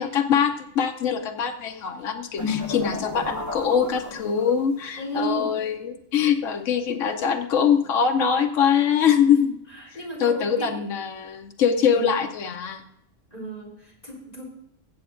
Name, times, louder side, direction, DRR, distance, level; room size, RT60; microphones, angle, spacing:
voice 1, 0.0-9.5 10.2-12.8, left 7 dB, 85° left, 4 dB, 1.1 m, -23 dB
sound 1, 2.4-4.8, left 3 dB, 15° left, 1.5 m, -32 dB
voice 2, 5.0-5.5 9.3-10.9 11.9-12.2 13.3-14.5, right 1 dB, 30° left, -4 dB, 3.6 m, -34 dB
22.0 x 7.8 x 2.5 m, 0.78 s
omnidirectional pair, 1.3 m